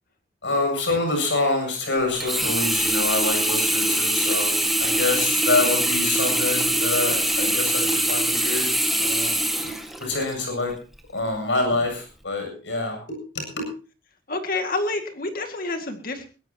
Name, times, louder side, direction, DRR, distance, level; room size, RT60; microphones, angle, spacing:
voice 1, 0.4-9.7 10.0-10.7 11.1-13.7, left 3 dB, 75° left, 3 dB, 7.9 m, -26 dB
Sink (filling or washing), 2.2-10.4 11.0-11.1, right 1 dB, ahead, 1.8 m, -23 dB
voice 2, 14.3-16.3, left 2 dB, 50° left, 6 dB, 2.2 m, -28 dB
21.5 x 16.5 x 3.0 m, 0.35 s
head